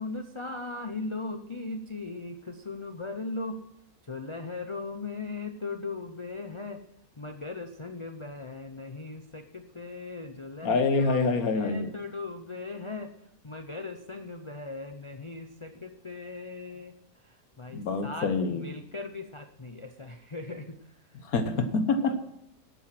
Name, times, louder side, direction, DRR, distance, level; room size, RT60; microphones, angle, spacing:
voice 1, 0.0-3.5 4.1-6.8 7.2-9.4 9.8-11.2 11.5-13.1 13.4-16.9 17.6-18.3 18.6-20.6 22.0-22.1, left 3 dB, 30° left, 6 dB, 0.5 m, -38 dB
voice 2, 10.6-11.9 17.7-18.8 21.2-22.2, left 3 dB, 75° left, 8 dB, 1.6 m, -26 dB
11.0 x 8.8 x 5.9 m, 0.79 s
omnidirectional pair, 1.6 m